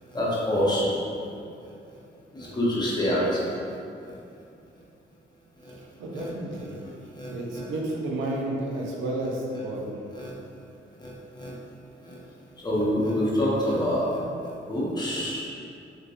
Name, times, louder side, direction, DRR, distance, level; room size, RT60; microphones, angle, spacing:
voice 1, 0.1-1.0 1.6-2.0 2.3-4.2 5.6-5.8 6.1-6.3 6.7-7.6 10.1-10.3 11.0-11.6 12.0-12.2 12.6-15.5, equal, 20° left, -7 dB, 0.7 m, -28 dB
voice 2, 5.7-6.7 7.0-10.0, right 1 dB, 85° right, -2 dB, 0.5 m, -32 dB
2.8 x 2.2 x 2.4 m, 2.6 s
cardioid pair, 75°, 20 cm